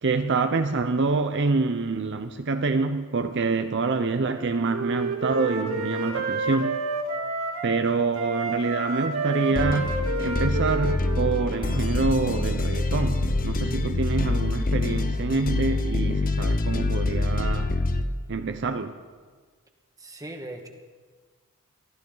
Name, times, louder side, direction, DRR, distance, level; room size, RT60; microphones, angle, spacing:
voice 1, 0.0-6.8 7.6-17.7 18.3-19.0, right 3 dB, 55° right, 0.7 m, -26 dB
Wind instrument woodwind instrument, 4.2-7.8 8.1-11.9, right 3 dB, 70° right, 2.1 m, -30 dB
sound 1, 9.5-18.0, left 2 dB, 40° left, 0.8 m, -25 dB
voice 2, 20.0-20.7, right 1 dB, 15° right, 1.6 m, -38 dB
23.0 x 14.0 x 4.0 m
head